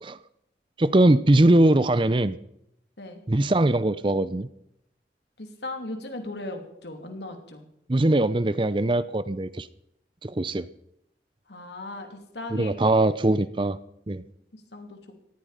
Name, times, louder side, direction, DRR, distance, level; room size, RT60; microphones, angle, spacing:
voice 1, 0.8-2.4 3.3-4.5 7.9-9.7 10.2-10.6 12.5-13.8 14.1-14.2, right 1 dB, 30° right, 16 dB, 0.6 m, -21 dB
voice 2, 5.4-7.7 11.5-12.7 14.7-15.0, left 2 dB, 75° left, 5 dB, 3.0 m, -37 dB
18.0 x 14.5 x 5.1 m, 0.77 s
head